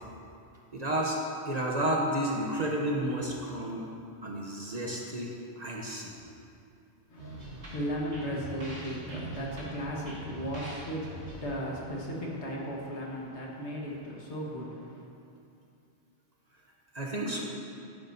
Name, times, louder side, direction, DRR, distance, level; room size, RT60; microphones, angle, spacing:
voice 1, 0.7-1.2 1.5-3.9 4.2-6.2 16.9-17.4, right 1 dB, 40° right, -2 dB, 1.0 m, -31 dB
voice 2, 7.1-15.0, equal, 70° left, -3 dB, 1.7 m, -36 dB
sound 1, 7.2-12.8, right 1 dB, 80° right, 2.1 m, -44 dB
11.5 x 9.9 x 2.7 m, 2.6 s
omnidirectional pair, 1.2 m